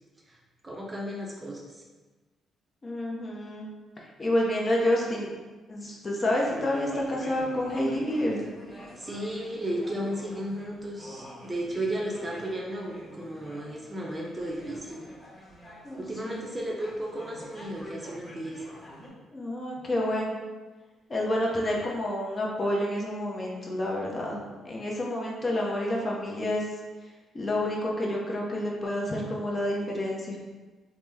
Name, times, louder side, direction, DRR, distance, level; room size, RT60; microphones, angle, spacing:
voice 1, 0.6-1.8 9.0-15.0 16.0-18.6, right 1 dB, 20° right, -2 dB, 0.5 m, -34 dB
voice 2, 2.8-3.7 4.2-5.3 5.7-8.4 15.8-16.4 19.3-20.4 21.1-26.7 27.3-30.4, left 1 dB, 30° left, -2 dB, 0.6 m, -29 dB
sound 1, 6.3-19.1, equal, ahead, 1.1 m, -47 dB
2.9 x 2.1 x 3.4 m, 1.3 s
cardioid pair, 90°, 0 cm